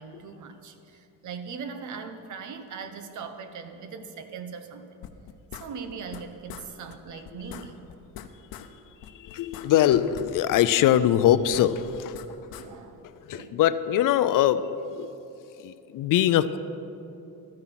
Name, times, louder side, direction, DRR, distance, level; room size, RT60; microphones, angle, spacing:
voice 1, 0.0-5.0 5.5-7.8 12.6-13.1 13.3-13.6, right 5 dB, 55° right, 8 dB, 1.0 m, -40 dB
sound 1, 5.0-6.2 6.5-6.7 6.9-7.0 7.2-8.7 9.0-10.7 10.9-12.7, left 10 dB, 90° left, 0.8 m, -42 dB
voice 2, 9.1-12.2 13.2-14.7 14.9-15.1 15.6-16.6, left 11 dB, 65° left, 14 dB, 0.5 m, -22 dB
13.0 x 9.8 x 5.8 m, 2.8 s
cardioid pair, 180°, 35 cm